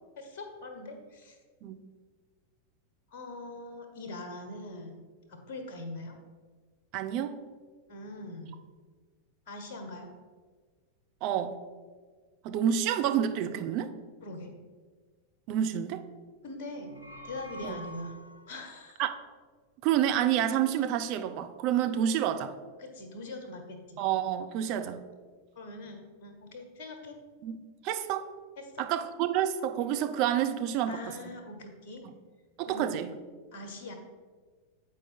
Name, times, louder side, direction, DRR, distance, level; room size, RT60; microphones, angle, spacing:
voice 1, 0.2-1.4 3.1-5.0 5.3-6.2 7.9-8.5 9.5-10.1 14.2-14.5 16.4-16.9 17.2-18.2 18.5-19.0 22.8-24.0 24.7-24.8 25.5-27.2 28.6-28.9 30.9-32.0 32.6-33.0 33.5-33.9, left 2 dB, 50° left, 3 dB, 1.3 m, -42 dB
voice 2, 6.9-7.4 11.2-11.6 12.4-13.9 15.5-16.1 17.6-17.8 19.0-19.1 19.8-22.5 24.0-25.0 27.4-27.6 27.8-28.3 28.8-31.3 32.0-32.1 32.6-33.1, right 10 dB, 40° right, 8 dB, 0.6 m, -29 dB
sound 1, 16.7-18.7, left 1 dB, 85° left, 0.7 m, -46 dB
8.4 x 4.7 x 4.3 m, 1.5 s
figure-of-eight pair, 90°, 0 cm